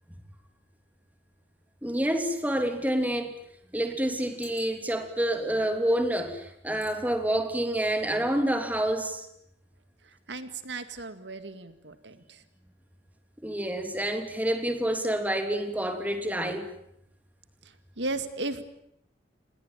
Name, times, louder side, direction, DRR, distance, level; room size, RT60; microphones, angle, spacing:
voice 1, 1.8-3.3 3.7-9.3 13.4-16.7, right 1 dB, 10° right, 5 dB, 3.2 m, -28 dB
sound 1, 4.4-5.1 5.7-5.9 6.8-7.0 7.4-7.6, left 9 dB, 75° left, 7.4 m, -51 dB
voice 2, 10.3-12.4 18.0-18.6, right 2 dB, 85° right, 10 dB, 2.1 m, -35 dB
29.0 x 20.5 x 9.1 m, 0.74 s
head